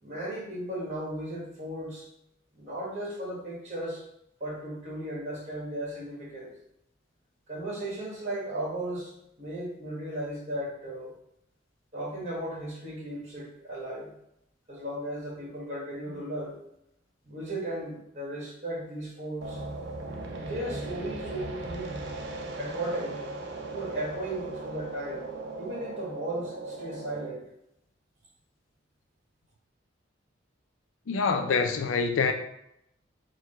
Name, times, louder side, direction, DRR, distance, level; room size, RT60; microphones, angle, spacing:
voice 1, 0.0-2.0 2.5-4.0 4.4-6.5 7.5-9.1 9.4-11.1 11.9-14.1 14.7-16.6 17.2-19.6 20.3-21.9 22.6-23.2 23.7-25.2 25.6-27.4, right 1 dB, 35° right, 1.7 m, -36 dB
sound 1, 19.4-27.3, right 2 dB, 60° right, 0.6 m, -38 dB
voice 2, 31.1-32.3, left 5 dB, 85° left, 0.4 m, -25 dB
4.7 x 2.2 x 4.3 m
head